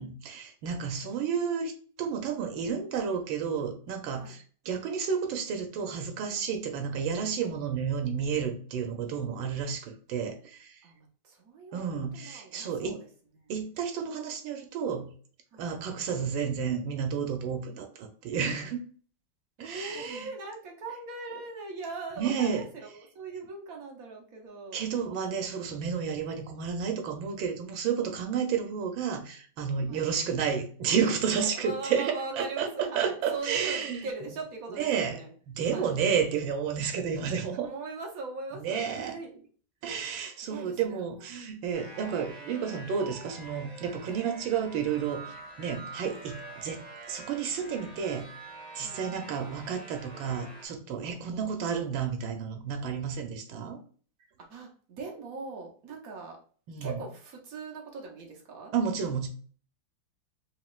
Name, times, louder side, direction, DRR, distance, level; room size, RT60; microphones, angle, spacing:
voice 1, 0.0-1.7 2.0-10.8 11.7-13.0 13.5-15.1 15.6-18.8 19.6-20.3 22.2-22.6 24.7-34.0 34.8-35.2 35.5-37.7 38.6-39.2 39.8-48.3 48.7-53.8 56.7-56.9 58.7-59.3, right 7 dB, 90° right, 5 dB, 1.4 m, -31 dB
voice 2, 10.8-13.1 13.4-13.5 15.5-15.7 19.6-24.8 29.9-30.1 31.4-35.3 35.7-36.0 37.5-39.5 40.4-41.3 41.7-42.0 44.0-44.2 46.0-46.2 48.8-49.0 54.4-56.4 56.8-58.7, right 3 dB, 55° right, 0 dB, 1.1 m, -41 dB
sound 1, 41.7-50.7, right 3 dB, 30° right, 2.1 m, -46 dB
5.1 x 2.9 x 2.4 m, 0.43 s
omnidirectional pair, 2.1 m